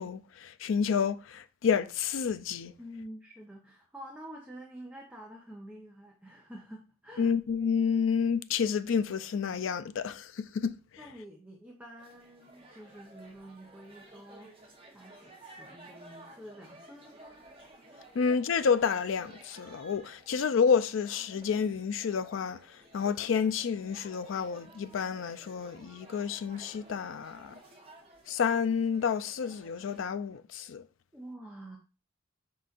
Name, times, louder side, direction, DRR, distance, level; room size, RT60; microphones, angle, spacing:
voice 1, 0.0-2.7 7.2-10.8 18.1-27.6 28.3-30.8, left 6 dB, 65° left, 0.4 m, -29 dB
voice 2, 2.8-7.3 11.0-14.5 14.9-17.4 31.1-31.8, right 1 dB, 5° right, 0.6 m, -48 dB
sound 1, 12.0-30.0, right 1 dB, 25° right, 1.0 m, -55 dB
5.5 x 3.9 x 2.5 m
head